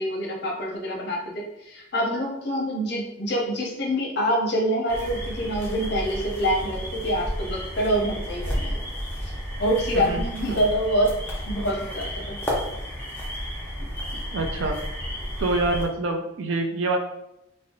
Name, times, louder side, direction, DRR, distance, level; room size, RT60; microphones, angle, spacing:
voice 1, 0.0-8.8 9.2-9.3 9.6-11.1 11.5-12.4 14.1-14.2, equal, 55° left, -1 dB, 0.6 m, -26 dB
sound 1, 4.9-15.8, equal, 10° left, 0.5 m, -32 dB
voice 2, 14.3-14.8 15.4-17.0, right 2 dB, 85° right, 4 dB, 0.4 m, -26 dB
2.7 x 2.0 x 2.6 m, 0.86 s
head